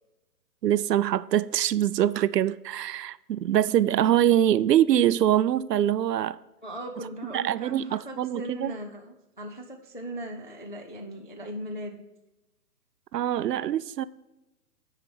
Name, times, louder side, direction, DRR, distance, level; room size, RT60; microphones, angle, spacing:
voice 1, 0.6-6.4 7.3-8.7 13.1-14.0, right 11 dB, 80° right, 0.6 m, -24 dB
voice 2, 6.6-12.0, right 1 dB, 35° left, 0.4 m, -38 dB
9.3 x 4.9 x 4.8 m
hypercardioid pair, 160°, 49 cm